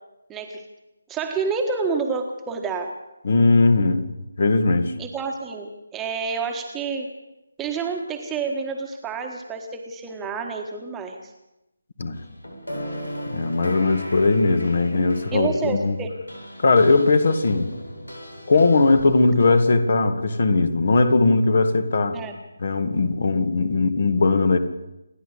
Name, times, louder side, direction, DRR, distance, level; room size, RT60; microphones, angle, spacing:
voice 1, 0.3-0.6 1.1-2.9 5.0-7.1 7.6-11.3 15.3-16.1 22.1-22.4, right 5 dB, 10° right, 3 dB, 1.6 m, -29 dB
voice 2, 3.2-4.0 4.4-4.9 12.0-12.2 13.3-16.0 16.6-17.7 18.5-22.2 22.6-24.6, left 3 dB, 45° left, 10 dB, 2.0 m, -19 dB
sound 1, 12.1-19.6, equal, 75° left, 7.7 m, -37 dB
28.5 x 11.0 x 8.4 m, 0.94 s
figure-of-eight pair, 150°, 0 cm